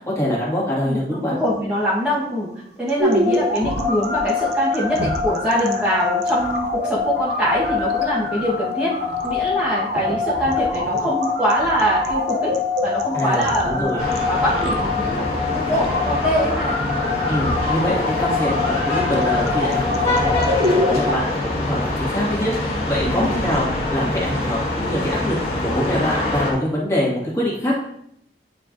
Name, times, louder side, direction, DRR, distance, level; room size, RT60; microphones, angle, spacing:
voice 1, 0.2-1.4 13.1-14.0 17.3-23.6 23.9-27.8, left 1 dB, 15° left, -6 dB, 1.9 m, -24 dB
voice 2, 0.8-2.5 2.8-8.9 9.2-12.5 12.8-14.0 14.3-15.3 15.5-16.7 23.0-23.5, equal, 10° right, -9 dB, 1.2 m, -23 dB
sound 1, 1.8-20.8, right 1 dB, 65° right, 0.7 m, -37 dB
sound 2, 3.0-21.1, left 3 dB, 85° right, 2.2 m, -24 dB
sound 3, 14.0-26.5, left 1 dB, 35° left, 1.8 m, -25 dB
9.2 x 4.5 x 2.6 m, 0.73 s
head